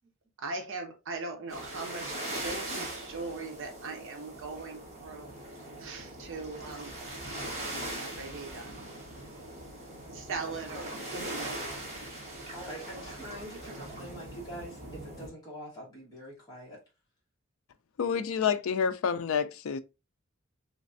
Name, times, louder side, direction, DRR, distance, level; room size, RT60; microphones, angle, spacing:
voice 1, 0.4-2.2 2.4-5.3 5.8-7.0 7.9-8.7 10.1-11.7, right 3 dB, 60° right, 0.8 m, -39 dB
sound 1, 1.5-15.3, right 1 dB, 30° right, 1.2 m, -41 dB
voice 2, 12.5-16.8 19.1-19.2, equal, 20° left, 1.2 m, -45 dB
voice 3, 18.0-19.8, left 6 dB, 65° left, 0.4 m, -28 dB
3.2 x 3.2 x 2.6 m
head